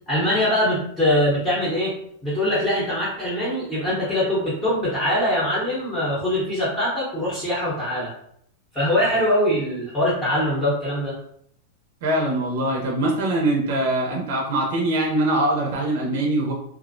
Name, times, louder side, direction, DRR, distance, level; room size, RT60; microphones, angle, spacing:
voice 1, 0.1-1.9 2.2-8.1 8.7-11.2, left 1 dB, 15° left, -8 dB, 0.7 m, -22 dB
voice 2, 12.0-16.5, right 1 dB, 60° right, 0 dB, 0.5 m, -22 dB
2.4 x 2.0 x 2.5 m, 0.70 s
supercardioid pair, 160°, 0 cm